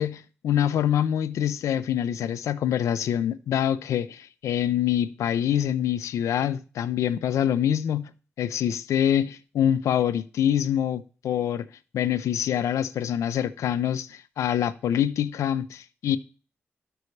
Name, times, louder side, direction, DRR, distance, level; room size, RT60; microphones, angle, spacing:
voice 1, 0.0-8.1 8.4-11.7 11.9-16.2, left 10 dB, 90° left, 0.4 m, -25 dB
12.0 x 5.4 x 3.2 m
cardioid pair, 60°, 5 cm